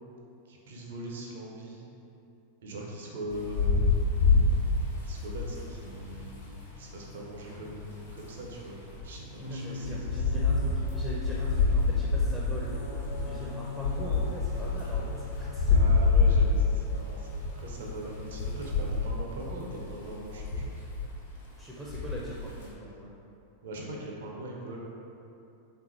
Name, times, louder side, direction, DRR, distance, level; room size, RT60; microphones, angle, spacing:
voice 1, 0.5-1.8 2.6-3.9 5.0-10.3 15.7-20.7 23.6-24.8, right 1 dB, 60° right, -2 dB, 0.6 m, -41 dB
sound 1, 3.3-9.2 9.5-9.6 9.8-21.5 21.8-22.6, left 4 dB, 75° left, 0.9 m, -27 dB
sound 2, 9.4-19.0, left 2 dB, 45° left, 0.6 m, -43 dB
voice 2, 9.5-12.7 13.2-15.8 21.6-23.1, equal, ahead, -6 dB, 0.5 m, -42 dB
3.5 x 3.3 x 3.0 m, 2.7 s
figure-of-eight pair, 90°, 0 cm